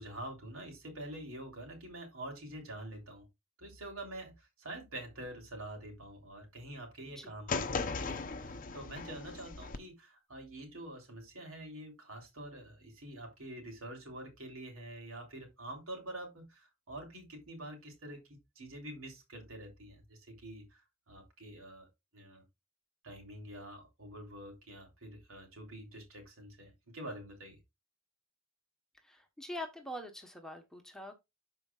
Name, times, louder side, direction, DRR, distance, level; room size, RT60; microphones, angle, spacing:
voice 1, 0.0-3.3 3.6-7.6 8.0-21.9 22.1-22.4 23.0-27.6, right 1 dB, 75° right, 3.3 m, -46 dB
sound 1, 7.5-9.8, left 4 dB, 40° left, 0.7 m, -37 dB
voice 2, 29.0-31.1, left 1 dB, 5° left, 1.1 m, -44 dB
13.0 x 4.6 x 2.4 m
head